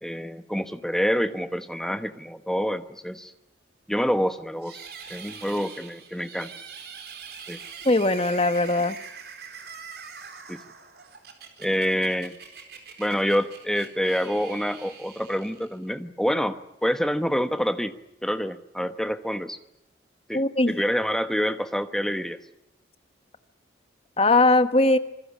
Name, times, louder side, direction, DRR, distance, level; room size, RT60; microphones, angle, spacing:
voice 1, 0.0-3.3 3.9-4.8 5.1-6.5 7.5-7.6 10.5-10.6 11.6-12.4 13.0-17.9 18.2-19.6 20.3-22.4, equal, 5° left, 9 dB, 1.2 m, -27 dB
sound 1, 4.6-15.9, right 6 dB, 55° right, 4.3 m, -43 dB
voice 2, 7.8-9.0 20.3-20.7 24.2-25.0, left 2 dB, 30° left, 11 dB, 1.2 m, -20 dB
26.5 x 21.0 x 8.6 m, 0.84 s
head